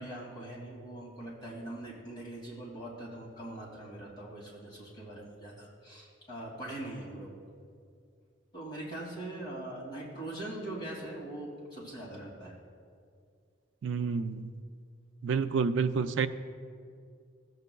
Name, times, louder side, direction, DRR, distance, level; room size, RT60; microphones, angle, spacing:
voice 1, 0.0-7.3 8.5-12.6, right 1 dB, 20° left, -7 dB, 2.4 m, -42 dB
voice 2, 13.8-14.5 15.2-16.3, right 5 dB, 65° right, 10 dB, 0.4 m, -29 dB
16.0 x 8.0 x 2.3 m, 2.2 s
head